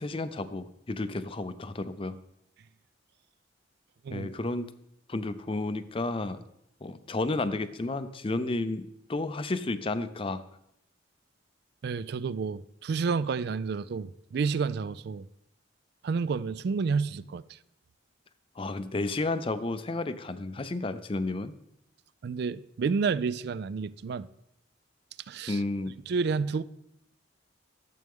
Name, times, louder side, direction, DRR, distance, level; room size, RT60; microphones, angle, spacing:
voice 1, 0.0-2.2 4.1-4.7 5.1-6.4 6.8-10.4 18.6-21.5 25.5-26.0, left 2 dB, 30° left, 0.5 m, -32 dB
voice 2, 11.8-15.3 16.0-17.6 22.2-24.3 25.3-25.6 26.1-26.6, right 5 dB, 55° right, 0.3 m, -30 dB
12.5 x 7.7 x 3.5 m
head